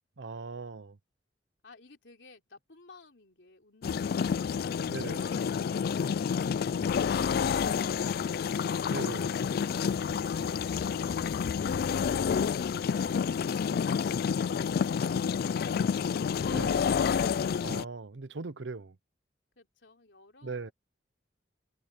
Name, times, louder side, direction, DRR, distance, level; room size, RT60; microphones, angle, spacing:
voice 1, 0.2-1.0 4.9-5.2 8.9-9.4 16.5-16.8 17.6-19.0 20.4-20.7, right 3 dB, 80° right, 0.8 m, -39 dB
voice 2, 1.6-8.8 19.6-20.7, left 3 dB, 75° left, 3.6 m, -56 dB
sound 1, 3.8-17.8, left 6 dB, 55° left, 0.3 m, -29 dB
head